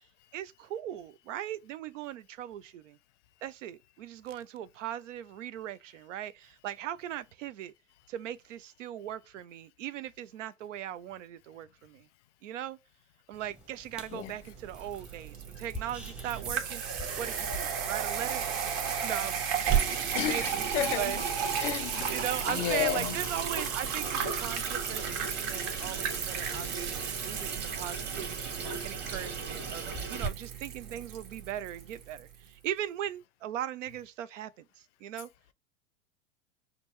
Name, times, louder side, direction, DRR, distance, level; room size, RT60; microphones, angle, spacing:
voice 1, 0.3-3.0 3.4-7.7 8.1-12.1 12.4-12.8 13.3-16.8 17.2-18.5 19.0-19.5 19.9-21.2 22.1-28.5 28.8-29.8 30.1-35.3, right 11 dB, 80° right, 0.5 m, -39 dB
sound 1, 13.3-18.6, left 1 dB, 5° right, 0.7 m, -47 dB
sound 2, 14.2-32.3, right 7 dB, 45° right, 1.3 m, -35 dB
Water tap faucet / Sink (filling or washing), 19.7-30.3, right 6 dB, 25° right, 1.2 m, -36 dB
voice 2, 20.1-20.5 20.7-21.2 21.6-22.1 22.5-23.1, left 13 dB, 70° left, 0.6 m, -31 dB
5.0 x 2.3 x 3.0 m
hypercardioid pair, 105°, 37 cm